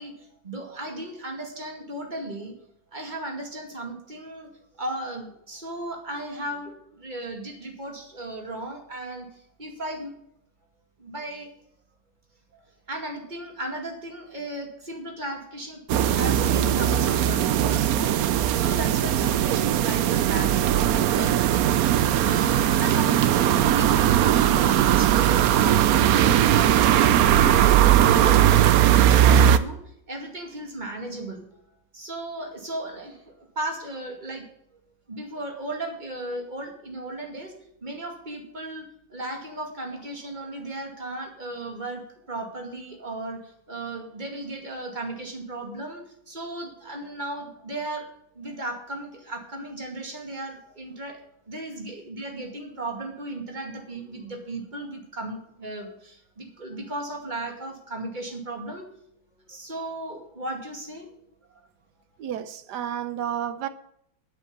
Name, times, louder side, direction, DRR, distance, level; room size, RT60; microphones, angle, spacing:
voice 1, 0.0-2.5 2.9-4.5 4.8-9.3 9.6-10.1 11.0-11.5 12.5-12.6 12.9-18.1 18.5-21.8 22.2-29.8 30.1-31.6 31.9-34.4 35.1-37.5 37.8-48.1 48.3-51.2 51.5-58.9 59.5-61.1 61.5-61.6, right 1 dB, 20° right, 2.2 m, -35 dB
sound 1, 15.9-29.6, right 11 dB, 80° right, 0.8 m, -19 dB
voice 2, 62.2-63.7, right 10 dB, 65° right, 1.2 m, -31 dB
10.5 x 8.2 x 6.9 m
omnidirectional pair, 2.2 m